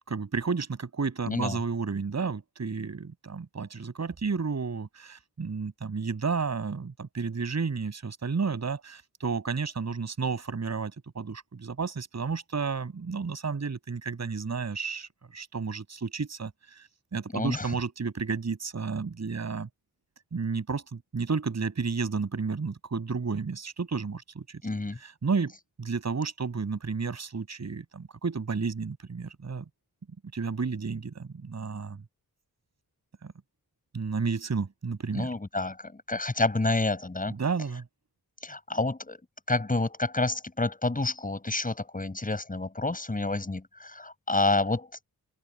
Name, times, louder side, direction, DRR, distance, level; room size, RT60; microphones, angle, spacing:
voice 1, 0.1-16.8 17.1-19.7 20.3-24.6 25.0-25.5 25.8-29.6 30.3-32.0 33.2-33.3 33.9-35.3 37.3-37.8, right 5 dB, 45° right, 6.0 m, -32 dB
voice 2, 1.3-1.6 17.3-17.7 24.6-25.0 35.1-37.3 38.4-39.2 39.5-44.9, left 2 dB, 20° left, 7.4 m, -29 dB
wide cardioid pair, 175°, 37 cm